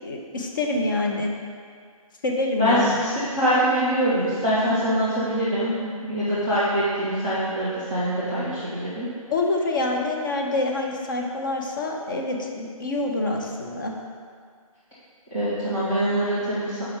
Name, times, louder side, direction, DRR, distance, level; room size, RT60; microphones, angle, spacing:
voice 1, 0.0-1.3 2.2-3.1 9.3-13.9, left 2 dB, 35° left, 1 dB, 0.7 m, -26 dB
voice 2, 2.6-9.1 15.3-16.9, equal, 5° left, -14 dB, 0.3 m, -24 dB
5.9 x 4.7 x 5.0 m, 2.1 s
figure-of-eight pair, 145°, 19 cm